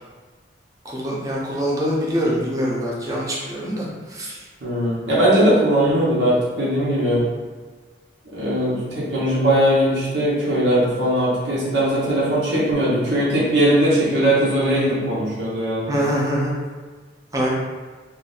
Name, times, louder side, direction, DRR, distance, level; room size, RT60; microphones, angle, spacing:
voice 1, 0.8-4.4 15.9-16.6 17.3-17.5, equal, 20° right, -5 dB, 0.6 m, -24 dB
voice 2, 4.6-7.2 8.3-15.9, right 1 dB, 90° right, -7 dB, 1.0 m, -19 dB
2.6 x 2.4 x 4.0 m, 1.4 s
head